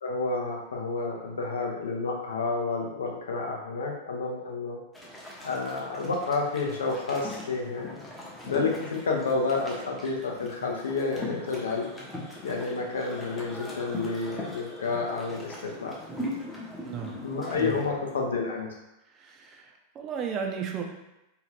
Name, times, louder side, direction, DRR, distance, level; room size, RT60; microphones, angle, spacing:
voice 1, 0.0-4.8 5.4-7.9 8.4-11.9 12.4-15.9 17.2-18.7, left 4 dB, 65° left, 0 dB, 0.6 m, -30 dB
sound 1, 4.9-17.9, left 1 dB, 10° left, 0.7 m, -40 dB
voice 2, 16.8-17.2 17.5-17.8 19.1-20.8, right 7 dB, 30° right, 2 dB, 0.5 m, -34 dB
2.7 x 2.4 x 3.2 m, 0.94 s
figure-of-eight pair, 90°, 0 cm